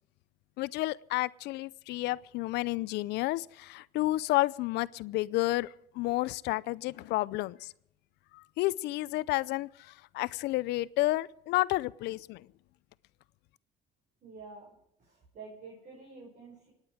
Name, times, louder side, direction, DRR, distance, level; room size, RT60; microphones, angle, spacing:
voice 1, 0.6-7.7 8.3-12.5, left 18 dB, 85° left, 0.5 m, -31 dB
voice 2, 14.2-14.7 15.0-16.7, right 4 dB, 50° right, 6.2 m, -48 dB
25.5 x 9.8 x 5.0 m
cardioid pair, 110°, 17 cm